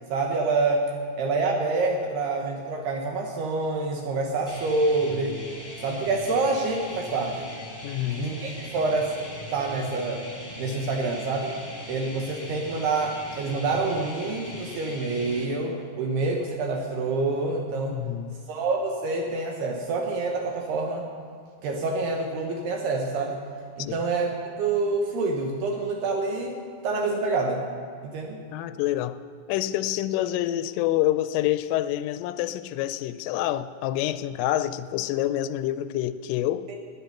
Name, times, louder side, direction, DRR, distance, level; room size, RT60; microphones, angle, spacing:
voice 1, 0.1-0.9 1.2-5.4 5.8-7.5 8.2-9.1 9.5-10.2 10.6-11.5 11.9-18.0 18.5-21.1 21.6-23.4 23.8-26.6 26.8-27.6 28.0-28.4 36.7-36.8, right 3 dB, 75° right, 2 dB, 2.5 m, -27 dB
sound 1, 4.5-15.5, left 1 dB, 15° left, 0.9 m, -40 dB
voice 2, 7.8-8.3 10.7-10.8 17.9-18.4 23.9-24.0 28.5-29.2 29.5-36.7, left 13 dB, 85° left, 13 dB, 3.0 m, -27 dB
19.0 x 10.0 x 5.8 m, 2.1 s
omnidirectional pair, 5.7 m